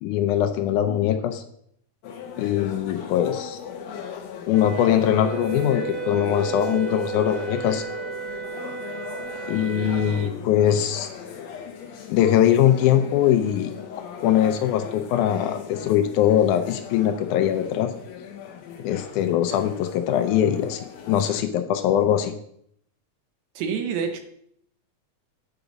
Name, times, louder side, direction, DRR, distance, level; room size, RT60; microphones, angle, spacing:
voice 1, 0.0-1.4 2.4-3.6 4.5-7.8 9.5-11.1 12.1-13.7 14.2-17.9 18.8-22.3, left 10 dB, 85° left, 8 dB, 2.1 m, -22 dB
sound 1, 2.0-21.4, left 7 dB, 70° left, 2.0 m, -38 dB
Wind instrument woodwind instrument, 4.5-10.3, right 8 dB, 45° right, 3.0 m, -34 dB
voice 2, 9.8-10.3 23.6-24.2, right 6 dB, 75° right, 6 dB, 2.1 m, -29 dB
8.0 x 4.8 x 4.0 m, 0.69 s
omnidirectional pair, 3.4 m